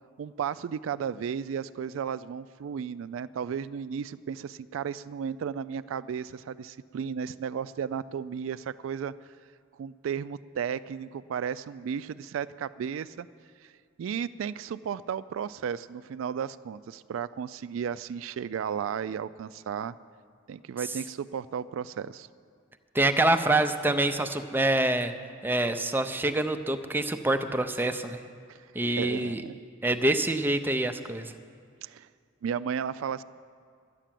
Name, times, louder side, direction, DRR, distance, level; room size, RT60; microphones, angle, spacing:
voice 1, 0.2-9.1 9.8-13.3 13.6-13.7 14.0-19.9 20.5-22.3 28.5-28.7 29.0-29.6 31.8-32.1 32.4-33.2, right 7 dB, 80° right, 15 dB, 0.3 m, -34 dB
voice 2, 22.9-25.1 25.4-28.2 28.7-29.4 29.8-31.3, right 2 dB, 10° right, 7 dB, 0.5 m, -26 dB
11.5 x 9.9 x 7.5 m, 2.3 s
head